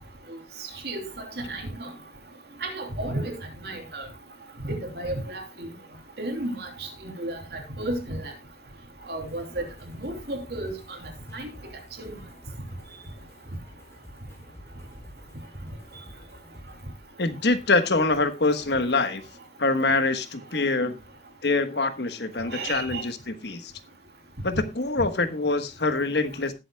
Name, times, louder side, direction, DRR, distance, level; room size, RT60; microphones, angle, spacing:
voice 1, 0.8-1.9 2.6-3.3 3.6-4.1 4.6-5.7 6.2-8.3 9.1-9.6 10.0-10.7 11.3-11.5 12.0-12.2 22.5-23.0, right 1 dB, 65° right, 3 dB, 3.1 m, -33 dB
sound 1, 9.2-16.8, equal, 15° left, 3.6 m, -49 dB
voice 2, 17.2-19.2 19.6-21.0 21.4-23.7 24.4-26.5, left 3 dB, 75° left, 10 dB, 1.3 m, -25 dB
19.0 x 7.8 x 2.3 m, 0.24 s
head